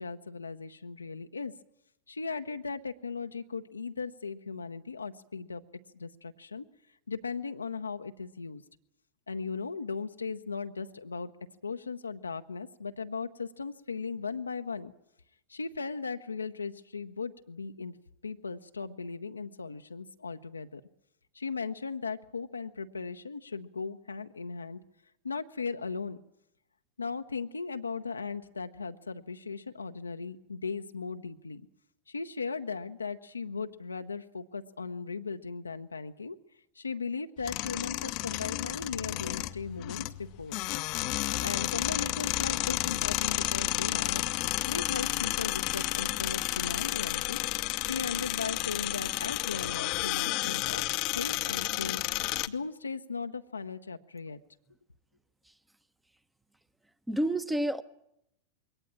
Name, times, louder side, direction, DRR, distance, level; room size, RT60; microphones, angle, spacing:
voice 1, 0.0-1.5 2.1-5.6 5.9-6.7 7.1-8.6 9.3-11.3 11.6-14.9 15.5-17.9 18.2-20.8 21.3-24.8 25.2-26.2 27.0-31.6 32.1-36.4 36.8-40.6 41.4-44.3 44.7-47.4 47.8-50.8 51.1-52.0 52.5-54.4, left 5 dB, 75° left, 7 dB, 0.8 m, -37 dB
sound 1, 37.4-52.5, left 19 dB, 40° left, 0.8 m, -31 dB
voice 2, 57.1-57.8, right 1 dB, 5° right, 15 dB, 1.1 m, -29 dB
22.0 x 18.0 x 8.8 m, 0.82 s
figure-of-eight pair, 90°, 0 cm